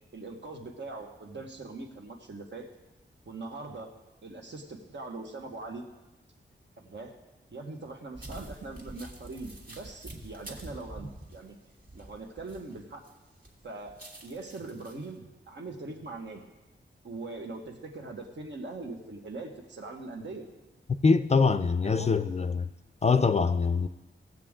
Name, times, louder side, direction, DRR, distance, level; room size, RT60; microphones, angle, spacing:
voice 1, 0.1-2.7 3.2-3.9 4.2-5.8 6.8-7.2 7.5-11.5 11.9-13.0 13.6-14.0 14.2-16.4 17.0-20.5 21.8-22.2, right 3 dB, 65° right, 1.6 m, -41 dB
sound 1, 8.1-13.1 13.4-15.1, right 1 dB, 45° right, 1.9 m, -46 dB
voice 2, 21.0-22.7 23.0-23.9, left 4 dB, 35° left, 0.4 m, -24 dB
17.5 x 7.7 x 3.7 m
wide cardioid pair, 130°, 20 cm